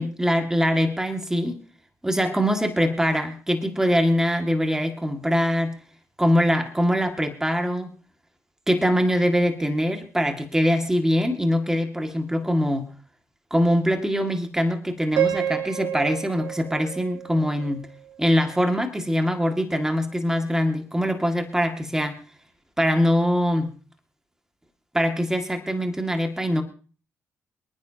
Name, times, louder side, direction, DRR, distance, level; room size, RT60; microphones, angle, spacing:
voice 1, 0.0-1.6 2.0-5.7 6.2-7.9 8.7-12.9 13.5-17.9 18.2-22.2 22.8-23.7 24.9-26.6, equal, 10° right, 5 dB, 2.1 m, -23 dB
Piano, 15.2-18.2, right 10 dB, 85° right, 2.2 m, -29 dB
28.0 x 9.7 x 2.9 m, 0.39 s
supercardioid pair, 65°, 5 cm